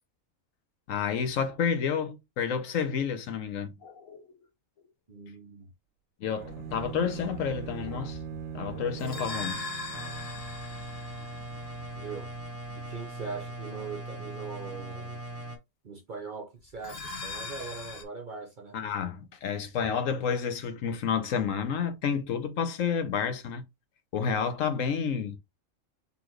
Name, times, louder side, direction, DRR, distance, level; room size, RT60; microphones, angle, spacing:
voice 1, 0.9-4.3 6.2-8.2 8.5-9.6 18.7-23.6 24.1-25.3, left 7 dB, 70° left, 1.1 m, -30 dB
voice 2, 5.1-5.7 12.0-12.3 12.8-15.2 15.8-18.8, right 5 dB, 45° right, 0.7 m, -41 dB
sound 1, 6.4-13.0 16.7-18.0, left 4 dB, 50° left, 1.1 m, -41 dB
Bowed string instrument, 6.4-10.4, right 9 dB, 75° right, 0.9 m, -40 dB
sound 2, 9.9-15.6, right 1 dB, 25° right, 1.1 m, -40 dB
4.1 x 3.3 x 3.1 m
omnidirectional pair, 1.4 m